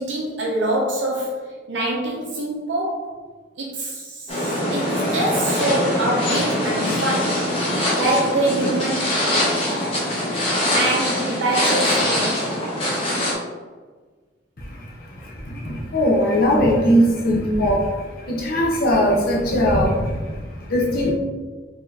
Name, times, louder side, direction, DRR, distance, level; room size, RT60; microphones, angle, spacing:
voice 1, 0.0-3.1 3.6-7.5 7.9-9.1 10.7-12.5, right 1 dB, 75° right, -3 dB, 0.7 m, -25 dB
sound 1, 4.3-13.3, left 1 dB, 30° left, 1.1 m, -22 dB
voice 2, 14.6-21.1, equal, 50° left, -3 dB, 0.8 m, -20 dB
4.5 x 3.0 x 3.3 m, 1.4 s
head